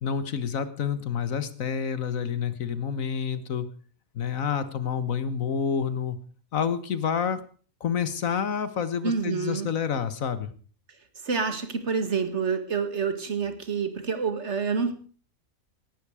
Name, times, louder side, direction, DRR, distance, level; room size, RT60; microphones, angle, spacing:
voice 1, 0.0-3.7 4.2-6.2 6.5-7.4 7.8-10.5, left 7 dB, 70° left, 13 dB, 1.6 m, -28 dB
voice 2, 9.0-9.7 11.2-14.9, right 5 dB, 50° right, 9 dB, 2.1 m, -28 dB
17.5 x 12.5 x 4.8 m, 0.42 s
omnidirectional pair, 1.5 m